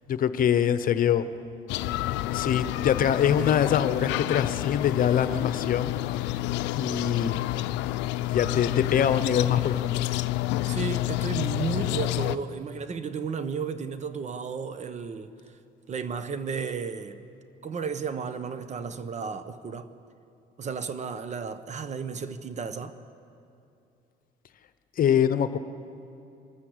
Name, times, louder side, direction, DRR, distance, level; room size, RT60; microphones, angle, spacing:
voice 1, 0.1-1.3 2.3-5.9 6.2-6.4 6.7-7.4 8.3-10.0 25.0-25.6, left 9 dB, 50° left, 0.9 m, -24 dB
sound 1, 1.7-12.4, left 17 dB, 85° left, 0.6 m, -29 dB
voice 2, 10.7-15.3 15.9-17.2 17.6-19.9 20.6-23.0, right 5 dB, 40° right, 1.1 m, -33 dB
24.0 x 13.5 x 8.1 m
cardioid pair, 100°, 18 cm